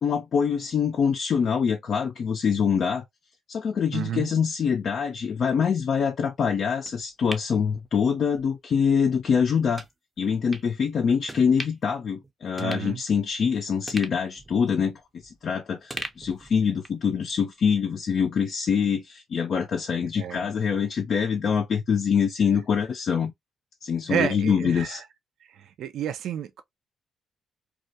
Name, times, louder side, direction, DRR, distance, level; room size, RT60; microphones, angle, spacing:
voice 1, 0.0-3.0 3.5-9.8 10.2-23.3 23.8-25.0, left 6 dB, 55° left, 0.4 m, -25 dB
voice 2, 3.9-4.3 12.6-13.0 20.0-20.5 24.1-25.1 25.5-26.6, right 9 dB, 75° right, 0.4 m, -31 dB
sound 1, 6.9-8.5 8.8-9.0 9.7-9.9 10.5-10.7 11.3-11.9 12.2-12.3 12.6-13.5 13.9-15.5 15.9-17.1 17.4-17.5, right 2 dB, 15° right, 0.5 m, -40 dB
2.3 x 2.1 x 2.6 m
cardioid pair, 90°, 0 cm